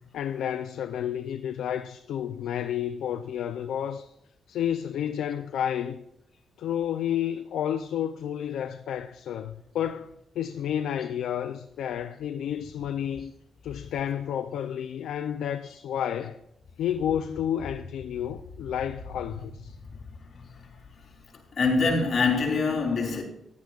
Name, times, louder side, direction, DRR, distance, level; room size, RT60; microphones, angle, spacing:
voice 1, 0.1-4.1 4.5-6.0 6.6-13.3 13.6-16.4 16.8-19.8, left 9 dB, 90° left, 0.5 m, -31 dB
voice 2, 21.6-23.2, left 4 dB, 50° left, 3.7 m, -24 dB
15.5 x 11.5 x 2.4 m
cardioid pair, 85°, 0 cm